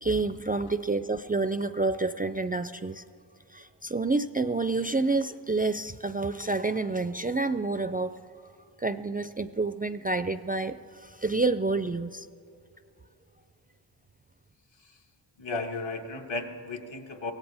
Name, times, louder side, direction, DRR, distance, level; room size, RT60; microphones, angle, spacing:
voice 1, 0.0-3.0 3.5-8.2 8.8-12.3, right 3 dB, 20° right, 11 dB, 0.3 m, -28 dB
voice 2, 15.4-17.3, left 3 dB, 70° left, 3 dB, 1.6 m, -35 dB
23.5 x 17.0 x 3.4 m, 2.6 s
wide cardioid pair, 75°, 47 cm